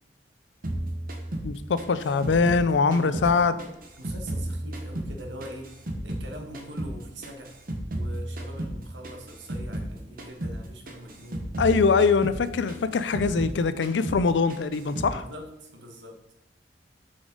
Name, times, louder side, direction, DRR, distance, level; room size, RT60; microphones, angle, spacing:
sound 1, 0.6-3.3 3.6-6.3 6.5-9.9 10.2-10.6 10.9-13.6 13.8-14.2 14.5-15.2, right 1 dB, 55° right, 1.0 m, -33 dB
voice 1, 1.4-3.6 11.6-15.2, left 4 dB, 85° left, 13 dB, 0.5 m, -23 dB
voice 2, 2.9-3.6 4.0-5.7 6.0-7.6 7.9-11.5 15.1-16.2, equal, 90° right, 4 dB, 1.3 m, -43 dB
7.1 x 5.2 x 3.9 m, 0.89 s
head